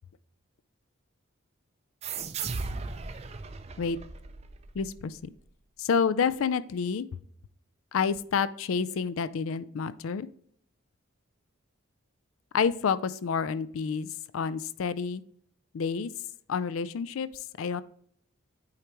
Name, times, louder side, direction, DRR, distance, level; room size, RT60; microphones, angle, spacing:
sound 1, 2.0-5.2, right 4 dB, 30° right, 0.4 m, -37 dB
voice 1, 4.7-5.3 5.8-7.1 7.9-10.3 12.5-15.2 15.7-16.1 16.5-17.8, left 6 dB, 75° left, 15 dB, 0.4 m, -29 dB
8.5 x 4.5 x 3.0 m, 0.64 s
head